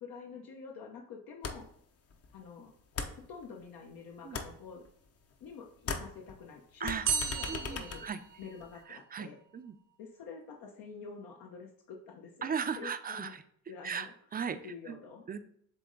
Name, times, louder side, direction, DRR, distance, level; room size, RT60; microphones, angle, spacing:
voice 1, 0.0-1.7 2.3-2.7 3.1-4.8 5.4-8.1 8.4-9.4 10.0-12.5 12.8-13.3 13.7-14.1 14.6-15.2, left 5 dB, 75° left, 0 dB, 0.9 m, -47 dB
sound 1, 1.4-1.8 2.1-3.9 4.2-5.5 5.8-8.8, left 4 dB, 45° left, 0.8 m, -40 dB
sound 2, 7.0-9.0, right 6 dB, 70° right, 0.9 m, -35 dB
voice 2, 7.5-8.2 8.9-9.7 12.4-13.4 13.8-14.6 14.9-15.0 15.3-15.4, right 6 dB, 25° right, 11 dB, 0.4 m, -37 dB
7.7 x 3.2 x 3.8 m, 0.65 s
cardioid pair, 120°, 35 cm